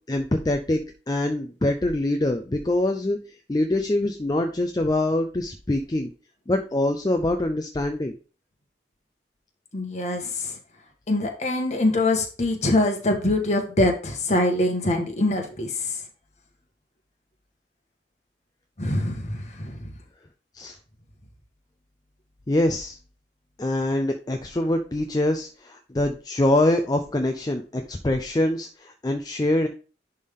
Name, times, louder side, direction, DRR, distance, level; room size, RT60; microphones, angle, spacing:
voice 1, 0.1-0.8 1.1-3.2 3.5-6.1 6.5-8.1 20.5-20.8 22.5-23.0 23.6-29.7, left 1 dB, 20° left, 5 dB, 0.5 m, -24 dB
voice 2, 9.7-10.5 11.1-15.7 18.8-19.9, left 1 dB, 40° left, 3 dB, 1.5 m, -24 dB
10.5 x 3.6 x 3.6 m, 0.36 s
head